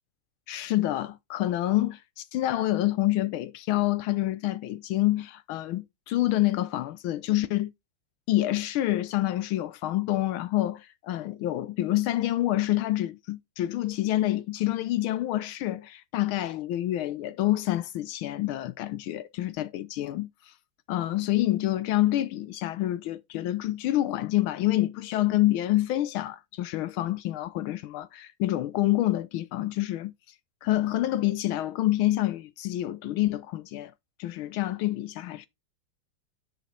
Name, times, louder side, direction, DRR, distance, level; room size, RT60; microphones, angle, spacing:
voice 1, 0.5-7.7 8.3-20.5 20.9-30.1 30.6-33.9 34.2-35.5, left 15 dB, 80° left, 1.5 m, -27 dB
9.5 x 5.9 x 4.3 m
omnidirectional pair, 2.3 m